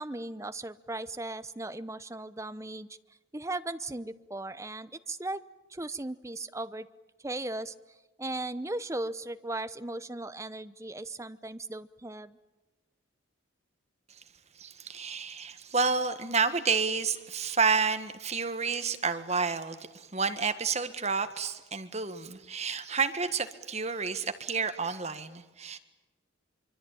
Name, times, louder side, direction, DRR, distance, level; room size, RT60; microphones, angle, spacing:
voice 1, 0.0-2.9 3.3-5.4 5.7-6.9 7.2-7.7 8.2-12.4, right 2 dB, 15° right, 13 dB, 0.8 m, -37 dB
voice 2, 14.6-25.8, right 5 dB, 35° right, 9 dB, 1.7 m, -30 dB
24.5 x 24.5 x 9.1 m, 1.1 s
head